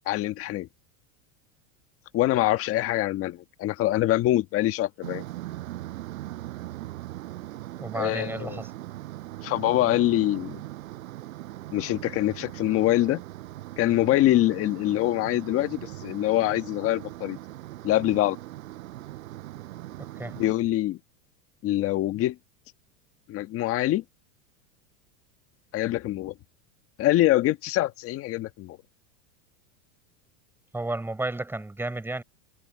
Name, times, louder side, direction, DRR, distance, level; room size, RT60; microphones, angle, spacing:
voice 1, 0.1-0.7 2.1-5.2 7.9-8.6 9.4-10.6 11.7-13.2 13.8-17.4 17.8-18.4 20.4-21.0 21.6-22.4 23.3-24.0 25.7-26.3 27.0-28.8, left 15 dB, 35° left, 1.5 m, -24 dB
sound 1, 5.0-20.6, right 16 dB, 80° right, 6.6 m, -40 dB
voice 2, 7.8-8.7 20.0-20.4 30.7-32.2, right 2 dB, 5° right, 4.8 m, -32 dB
supercardioid pair, 150°, 40 cm